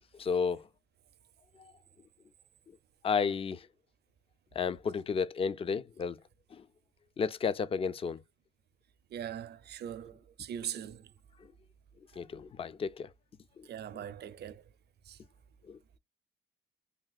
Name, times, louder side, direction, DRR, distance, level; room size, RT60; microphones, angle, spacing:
voice 1, 0.2-0.6 3.0-3.6 4.6-6.2 7.2-8.2 12.2-13.1 15.7-15.8, left 6 dB, 30° left, 0.4 m, -32 dB
voice 2, 9.1-11.1 13.6-14.6 15.1-15.2, right 9 dB, 55° right, 0.5 m, -41 dB
3.4 x 2.8 x 2.3 m
cardioid pair, 90°, 20 cm